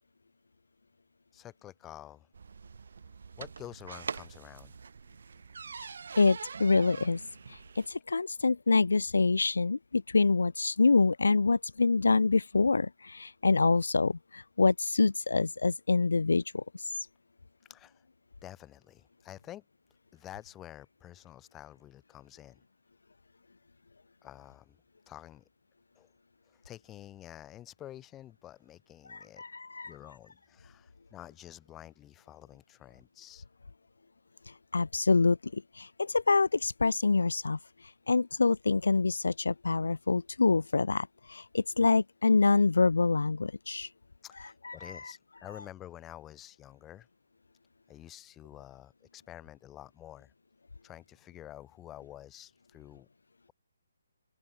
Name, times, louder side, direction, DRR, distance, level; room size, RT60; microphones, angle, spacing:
voice 1, 1.3-2.3 3.4-4.7 17.7-18.0 18.4-19.6 20.1-22.6 24.2-24.8 25.1-25.5 26.0-26.1 26.5-29.4 29.8-33.4 44.2-47.1 47.9-50.3 50.8-53.1, left 13 dB, 15° left, 5.7 m, -49 dB
sound 1, 2.3-7.9, right 5 dB, 65° right, 2.9 m, -44 dB
voice 2, 6.2-7.2 7.5-16.6 29.1-29.9 34.7-37.6 38.1-43.9 44.6-45.1, left 3 dB, 80° left, 1.5 m, -26 dB
hypercardioid pair, 155°, 0 cm